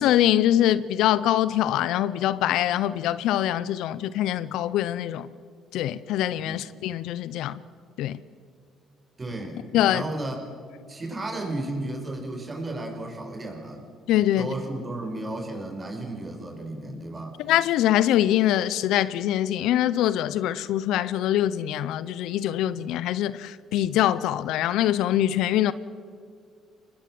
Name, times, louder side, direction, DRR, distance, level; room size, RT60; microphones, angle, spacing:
voice 1, 0.0-5.3 5.7-7.6 8.0-8.2 9.7-10.0 14.1-14.5 17.5-25.7, left 12 dB, 75° left, 0.7 m, -23 dB
voice 2, 9.2-10.4 10.9-13.8 14.4-17.4, right 2 dB, 30° right, 5.7 m, -34 dB
23.5 x 20.0 x 7.8 m
hypercardioid pair, 65°, 0 cm